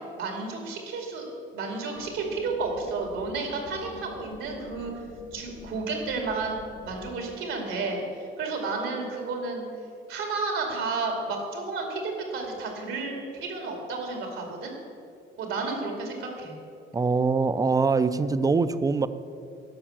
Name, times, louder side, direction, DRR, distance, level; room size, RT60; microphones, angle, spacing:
voice 1, 0.1-5.1 5.3-9.7 10.1-14.7 15.4-16.5, right 3 dB, 85° right, 2 dB, 2.3 m, -32 dB
sound 1, 1.9-7.1, left 5 dB, 40° left, 0.7 m, -47 dB
voice 2, 16.9-19.1, right 4 dB, 20° right, 13 dB, 0.4 m, -23 dB
11.5 x 5.6 x 7.5 m, 2.5 s
cardioid pair, 90°, 20 cm